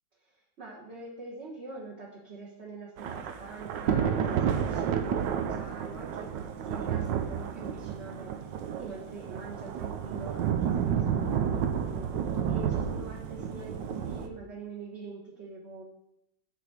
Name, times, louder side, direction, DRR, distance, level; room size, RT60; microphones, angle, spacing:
voice 1, 0.1-6.3 6.6-8.3 8.8-12.1 12.4-15.8, right 3 dB, 40° right, -4 dB, 1.4 m, -44 dB
Thunder / Rain, 3.0-14.3, right 8 dB, 75° right, 1.3 m, -31 dB
8.1 x 4.2 x 6.4 m, 0.83 s
omnidirectional pair, 2.1 m